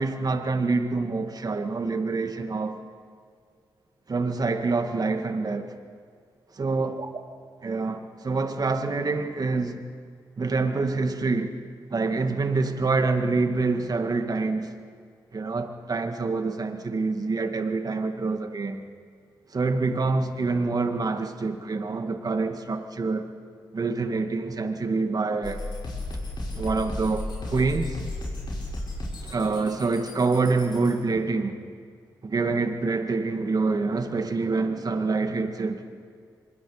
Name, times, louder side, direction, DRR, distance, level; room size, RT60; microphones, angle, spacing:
voice 1, 0.0-2.8 4.1-5.7 6.6-7.1 7.6-9.9 10.4-11.5 11.9-14.7 15.3-18.8 19.5-23.3 23.7-25.6 26.6-28.0 29.2-31.6 32.2-35.8, right 3 dB, 45° right, 6 dB, 2.0 m, -26 dB
sound 1, 25.4-31.0, left 1 dB, 60° left, 6.8 m, -34 dB
24.0 x 22.0 x 5.0 m, 2.1 s
supercardioid pair, 45°, 9 cm